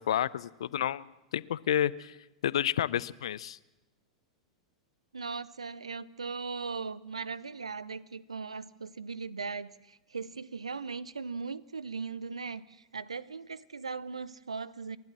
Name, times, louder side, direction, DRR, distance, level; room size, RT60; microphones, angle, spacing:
voice 1, 0.0-2.2 2.4-3.6, left 10 dB, 65° left, 21 dB, 0.6 m, -30 dB
voice 2, 5.1-15.0, right 4 dB, 85° right, 20 dB, 0.7 m, -38 dB
29.0 x 12.0 x 7.5 m, 1.0 s
figure-of-eight pair, 95°, 3 cm